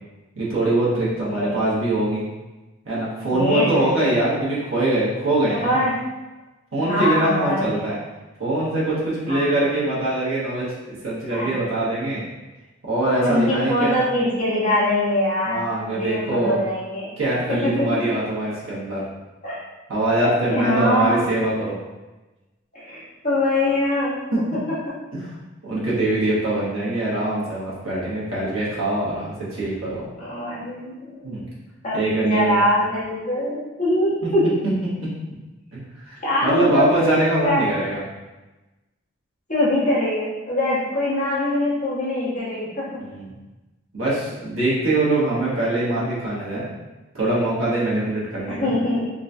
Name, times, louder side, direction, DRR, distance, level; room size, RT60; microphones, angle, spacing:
voice 1, 0.3-2.2 2.8-5.8 6.7-8.0 8.4-12.2 12.8-14.0 15.4-16.6 17.2-19.0 19.9-21.8 24.3-24.4 25.1-25.3 25.6-30.1 31.2-31.5 31.9-32.6 34.2-34.3 34.6-35.1 35.7-38.0 43.0-43.3 43.9-46.7 47.1-48.7, right 2 dB, 80° right, -7 dB, 1.0 m, -23 dB
voice 2, 1.3-1.7 3.3-4.0 5.5-6.0 6.8-7.8 9.3-9.7 11.3-11.5 13.2-17.1 17.5-18.1 19.4-19.6 20.2-21.2 22.7-24.6 30.2-31.4 31.8-34.5 36.2-36.9 37.4-37.7 39.5-43.0 48.5-49.1, left 1 dB, 40° left, -8 dB, 1.1 m, -23 dB
3.7 x 2.2 x 2.6 m, 1.1 s
head